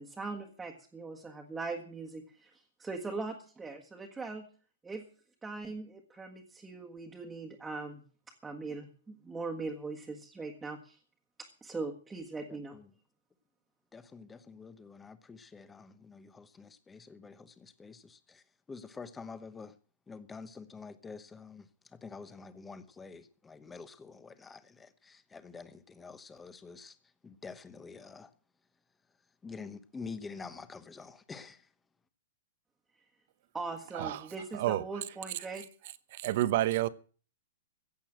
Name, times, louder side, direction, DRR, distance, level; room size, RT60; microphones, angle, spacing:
voice 1, 0.0-2.5 2.8-4.5 4.8-5.0 5.4-8.0 8.4-11.0 11.4-12.8 33.5-35.6, right 3 dB, 10° right, 1.5 m, -40 dB
voice 2, 13.9-18.4 18.7-19.7 20.1-21.7 21.9-27.0 27.2-28.3 29.4-31.6, left 4 dB, 10° left, 1.0 m, -47 dB
voice 3, 33.9-35.0 35.3-35.6 36.1-36.9, right 14 dB, 50° right, 0.9 m, -31 dB
15.5 x 8.4 x 7.7 m
hypercardioid pair, 155°, 0 cm